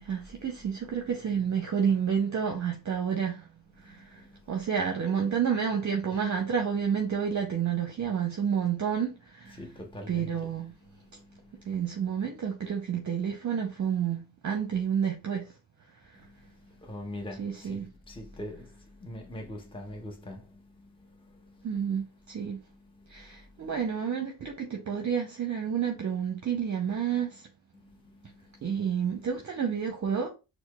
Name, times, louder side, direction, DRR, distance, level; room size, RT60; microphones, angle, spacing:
voice 1, 0.0-3.5 3.8-9.6 10.1-10.7 11.6-15.5 17.4-17.9 21.6-22.6 23.1-27.5 28.6-30.3, right 7 dB, 40° right, 0.7 m, -30 dB
voice 2, 3.9-4.4 9.5-10.5 10.8-11.8 16.2-21.6 22.7-23.7 27.7-28.7, left 1 dB, 10° left, 0.8 m, -44 dB
4.4 x 2.1 x 2.3 m
hypercardioid pair, 40°, 47 cm